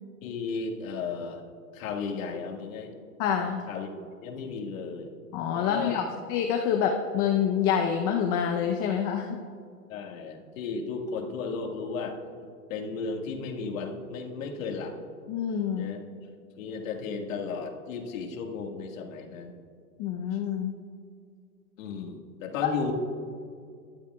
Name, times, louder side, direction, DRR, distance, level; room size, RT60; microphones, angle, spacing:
voice 1, 0.2-1.4 1.7-2.9 3.7-3.9 4.2-5.1 5.5-6.0 9.9-12.2 12.7-15.0 15.7-16.0 16.6-19.6 20.3-20.4 21.8-22.9, left 4 dB, 60° left, 3 dB, 1.9 m, -34 dB
voice 2, 3.2-3.7 5.3-9.4 15.3-15.9 20.0-20.7 22.6-22.7, left 8 dB, 30° left, 3 dB, 0.8 m, -27 dB
21.0 x 11.5 x 2.4 m, 2.3 s
hypercardioid pair, 140°, 46 cm